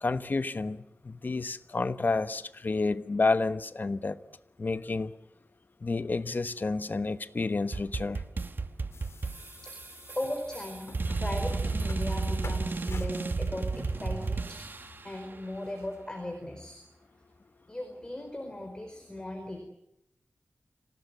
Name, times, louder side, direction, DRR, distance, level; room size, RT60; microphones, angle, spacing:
voice 1, 0.0-4.2 4.6-5.1 5.8-8.2, left 3 dB, 45° left, 1.1 m, -30 dB
sound 1, 7.7-15.1, right 3 dB, 50° right, 1.3 m, -32 dB
sound 2, 8.9-16.1, left 4 dB, 90° left, 2.4 m, -50 dB
voice 2, 10.1-10.9 11.2-14.6 15.0-16.8 17.7-19.6, left 1 dB, 20° left, 4.5 m, -37 dB
27.0 x 18.0 x 9.4 m
wide cardioid pair, 100°, 4 cm